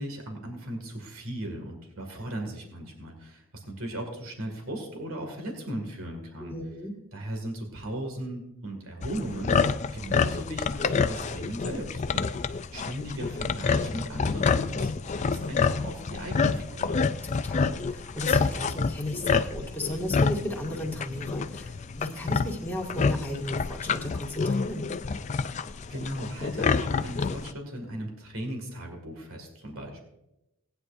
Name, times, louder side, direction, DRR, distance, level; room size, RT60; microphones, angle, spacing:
voice 1, 0.0-6.5 7.1-9.7 9.9-17.1 25.9-30.0, equal, 70° right, 3 dB, 2.2 m, -37 dB
voice 2, 6.4-6.9 17.4-24.9, left 1 dB, 10° left, -2 dB, 1.9 m, -35 dB
sound 1, 9.0-27.5, left 5 dB, 30° left, 0.3 m, -28 dB
18.0 x 9.6 x 2.6 m, 0.88 s
head